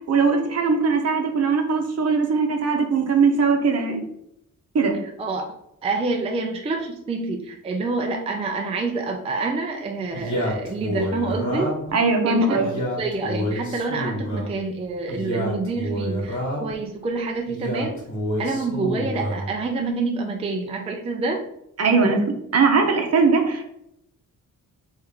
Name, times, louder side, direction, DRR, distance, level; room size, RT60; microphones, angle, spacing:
voice 1, 0.1-4.0 4.7-5.0 11.9-12.7 21.8-22.2 22.5-23.6, right 4 dB, 50° right, 4 dB, 0.8 m, -20 dB
voice 2, 5.8-11.7 12.2-12.6 13.0-18.0 18.4-21.4, right 3 dB, 20° right, 3 dB, 0.3 m, -27 dB
Male speech man speaking, 10.1-12.0 12.5-14.5 15.1-16.8 17.5-19.5, equal, 60° left, 1.8 m, -28 dB
3.6 x 3.2 x 4.7 m, 0.77 s
wide cardioid pair, 175°, 32 cm